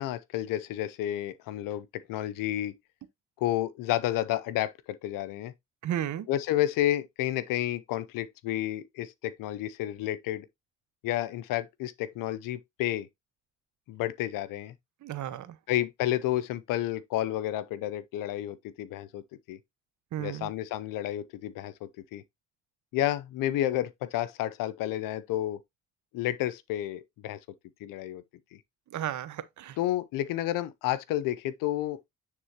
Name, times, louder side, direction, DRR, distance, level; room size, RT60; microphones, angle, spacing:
voice 1, 0.0-2.7 3.4-5.5 6.3-10.5 11.0-13.1 13.9-14.7 15.7-19.2 19.5-19.6 20.2-22.2 22.9-25.6 26.1-27.4 27.8-28.2 29.8-32.0, left 13 dB, 70° left, 0.7 m, -31 dB
voice 2, 5.8-6.3 15.0-15.6 20.1-20.5 28.9-29.8, right 11 dB, 60° right, 1.0 m, -34 dB
9.5 x 3.6 x 2.9 m
supercardioid pair, 65°, 34 cm